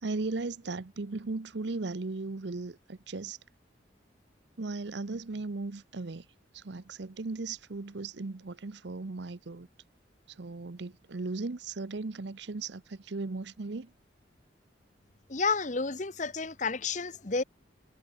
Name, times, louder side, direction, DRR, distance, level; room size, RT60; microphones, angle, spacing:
voice 1, 0.0-3.4 4.6-6.3 6.5-9.7 10.3-13.9, right 3 dB, 65° right, 0.7 m, -37 dB
voice 2, 15.3-17.4, left 4 dB, 40° left, 1.1 m, -31 dB
head